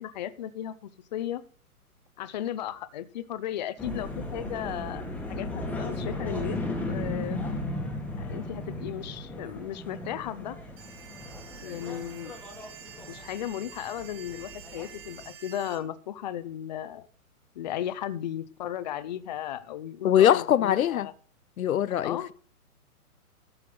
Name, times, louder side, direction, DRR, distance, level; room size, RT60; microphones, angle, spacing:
voice 1, 0.0-1.4 2.2-5.0 5.3-6.6 6.9-7.4 8.2-10.6 11.6-12.3 13.1-17.1 17.5-21.1 22.0-22.3, left 11 dB, 30° left, 0.6 m, -35 dB
sound 1, 3.8-15.3, left 2 dB, 5° left, 1.5 m, -36 dB
sound 2, 10.8-15.8, right 8 dB, 30° right, 3.1 m, -48 dB
voice 2, 20.0-21.1 21.6-22.3, left 10 dB, 65° left, 0.7 m, -22 dB
13.0 x 5.8 x 7.8 m
hypercardioid pair, 150°, 45 cm